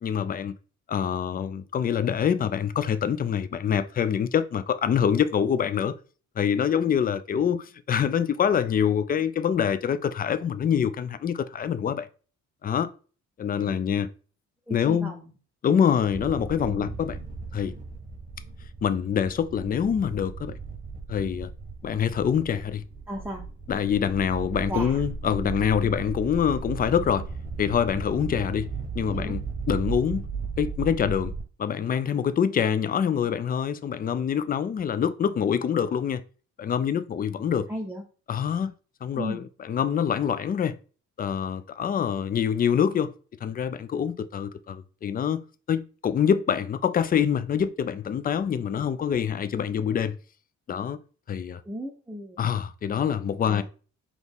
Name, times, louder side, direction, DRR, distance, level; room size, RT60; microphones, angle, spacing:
voice 1, 0.0-0.5 0.9-5.9 6.4-12.1 12.6-12.9 13.4-14.1 14.7-15.1 15.6-17.2 17.5-17.7 18.8-20.5 21.1-21.5 21.8-22.8 23.7-27.3 27.6-29.4 29.7-30.3 30.6-31.3 31.6-36.2 36.6-37.7 38.3-38.7 39.0-39.4 39.7-40.8 41.2-43.1 43.4-45.4 45.7-50.2 50.7-51.0 51.3-51.6 52.4-53.6, left 8 dB, 30° left, 0.4 m, -25 dB
voice 2, 14.7-15.3 16.6-16.9 23.1-23.5 24.7-25.0 29.1-29.4 37.7-38.0 39.1-39.5 51.6-52.4 53.4-53.6, equal, 5° right, 0.7 m, -35 dB
sound 1, 16.1-31.4, right 5 dB, 25° right, 1.0 m, -36 dB
4.0 x 3.0 x 3.5 m
cardioid pair, 90°, 30 cm